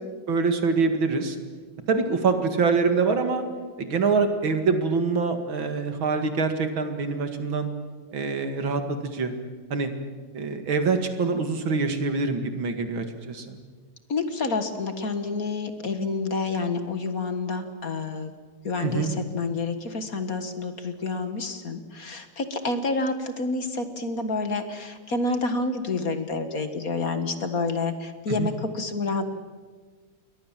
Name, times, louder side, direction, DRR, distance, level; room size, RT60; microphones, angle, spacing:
voice 1, 0.3-1.4 1.9-3.4 3.8-7.7 8.1-9.3 9.7-9.9 10.3-13.6 18.8-19.1 28.4-28.5, right 4 dB, 70° right, 7 dB, 2.9 m, -25 dB
voice 2, 14.1-18.3 18.6-29.3, left 3 dB, 45° left, 8 dB, 1.9 m, -28 dB
29.0 x 22.5 x 7.5 m, 1.4 s
omnidirectional pair, 2.3 m